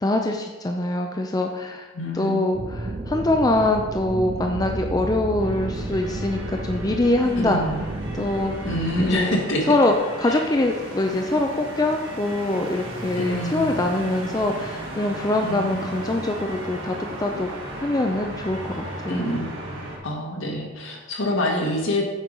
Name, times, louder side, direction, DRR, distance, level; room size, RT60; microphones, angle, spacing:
voice 1, 0.0-7.6 8.1-8.7 9.0-9.4 9.7-17.5 17.8-19.2, left 2 dB, 20° left, 3 dB, 0.5 m, -24 dB
voice 2, 1.9-2.4 7.4-7.8 8.6-9.7 10.2-10.4 13.2-13.8 15.4-15.9 19.1-19.5 20.0-22.0, left 1 dB, 70° left, 0 dB, 1.7 m, -26 dB
sound 1, 2.5-9.3, right 2 dB, 30° right, 0.5 m, -32 dB
sound 2, 5.4-20.0, right 1 dB, 65° right, 1.8 m, -36 dB
8.2 x 4.7 x 5.2 m, 1.2 s
head